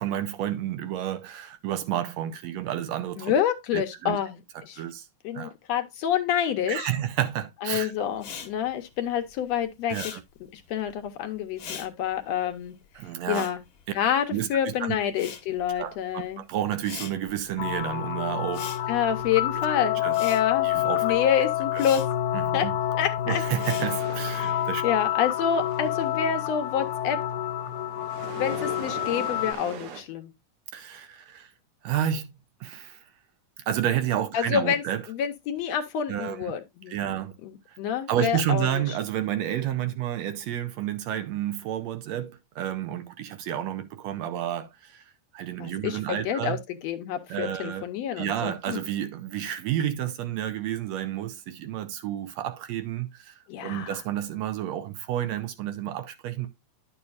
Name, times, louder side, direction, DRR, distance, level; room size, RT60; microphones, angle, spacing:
voice 1, 0.0-3.3 3.7-4.2 4.7-5.1 5.3-5.5 6.7-7.9 9.9-10.2 13.0-13.5 14.3-15.0 15.8-18.9 20.0-20.2 20.6-21.1 21.7-21.8 22.3-22.8 23.3-24.8 30.7-31.5 31.8-32.3 32.6-33.1 33.7-35.0 36.1-36.4 36.9-37.3 37.7-37.8 38.1-46.6 47.3-47.8 48.2-56.5, right 11 dB, 75° right, 1.8 m, -30 dB
voice 2, 3.2-4.8 5.2-6.9 7.6-10.2 10.5-12.8 13.3-13.6 13.9-16.4 18.9-20.7 21.0-22.0 22.5-22.7 23.0-23.4 24.4-27.2 28.4-30.3 34.3-34.8 35.1-36.9 37.4-38.9 45.6-46.6 46.8-48.8 53.5-54.0, left 9 dB, 70° left, 1.9 m, -28 dB
Respiratory sounds, 8.1-14.6 14.9-24.3, left 7 dB, 55° left, 1.7 m, -43 dB
sound 1, 17.6-29.5, left 12 dB, 90° left, 2.1 m, -28 dB
sound 2, 23.3-30.0, right 7 dB, 90° right, 2.7 m, -43 dB
10.5 x 7.0 x 2.4 m
omnidirectional pair, 3.3 m